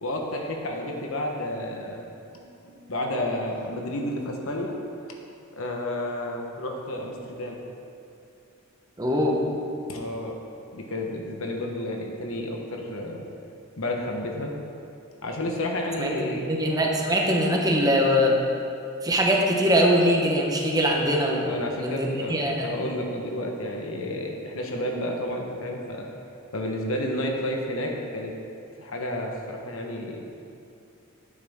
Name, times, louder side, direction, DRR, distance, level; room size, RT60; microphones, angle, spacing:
voice 1, 0.0-2.1 2.6-4.7 5.6-7.6 9.9-10.4 10.7-13.2 13.8-14.5 15.2-16.4 21.4-26.1 26.5-28.3 28.8-30.2, left 1 dB, 70° left, 1 dB, 1.2 m, -31 dB
voice 2, 9.0-9.4 16.0-18.4 19.0-21.6 21.8-22.7, equal, 15° right, -1 dB, 1.1 m, -22 dB
11.0 x 8.9 x 3.7 m, 2.6 s
head